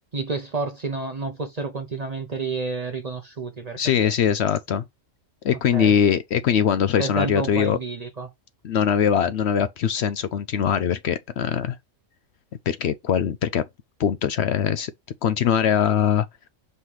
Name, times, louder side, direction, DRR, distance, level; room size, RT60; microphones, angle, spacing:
voice 1, 0.1-4.1 5.7-6.0 7.0-8.3, right 4 dB, 40° right, 0.7 m, -30 dB
voice 2, 3.8-4.8 5.4-7.8 8.6-11.8 12.7-13.6 14.0-14.9 15.2-16.3, left 8 dB, 65° left, 0.7 m, -22 dB
5.5 x 3.2 x 5.6 m
omnidirectional pair, 1.4 m